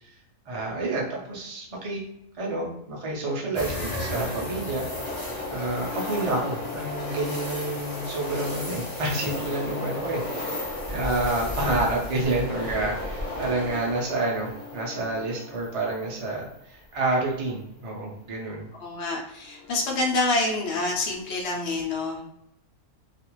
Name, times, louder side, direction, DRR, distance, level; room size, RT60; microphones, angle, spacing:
voice 1, 0.5-2.0 2.4-4.9 5.5-10.6 10.9-18.7, right 2 dB, 60° right, -3 dB, 0.3 m, -29 dB
sound 1, 3.5-16.6 17.0-17.1 19.5-19.9, left 2 dB, 40° left, 0.5 m, -34 dB
voice 2, 18.8-22.4, left 2 dB, 55° left, -1 dB, 0.9 m, -27 dB
2.5 x 2.4 x 3.0 m, 0.80 s
omnidirectional pair, 1.6 m